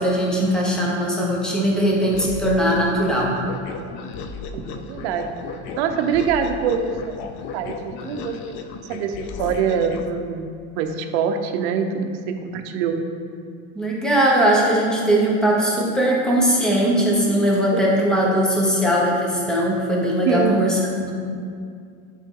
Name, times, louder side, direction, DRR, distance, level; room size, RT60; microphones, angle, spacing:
voice 1, 0.0-3.3 13.7-21.1, equal, ahead, -3 dB, 0.9 m, -20 dB
sound 1, 2.1-10.1, left 5 dB, 35° left, 0.4 m, -35 dB
voice 2, 4.5-5.3 5.8-13.0 17.7-17.8 20.3-20.6, right 6 dB, 70° right, 5 dB, 0.8 m, -25 dB
11.5 x 3.8 x 3.7 m, 2.3 s
cardioid pair, 165°, 34 cm